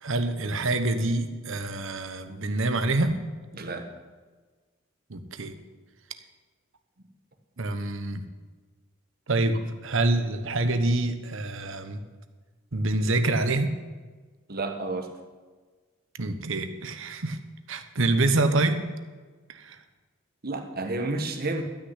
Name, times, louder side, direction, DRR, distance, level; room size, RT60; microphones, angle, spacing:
voice 1, 0.0-3.2 5.1-5.5 7.6-8.2 9.3-12.0 12.7-13.7 16.2-17.4 17.7-18.9 19.5-19.8, right 2 dB, 70° right, 9 dB, 1.1 m, -26 dB
voice 2, 3.5-3.9 14.5-15.1 20.4-21.6, right 2 dB, 50° right, 4 dB, 1.5 m, -30 dB
12.5 x 6.5 x 9.8 m, 1.4 s
head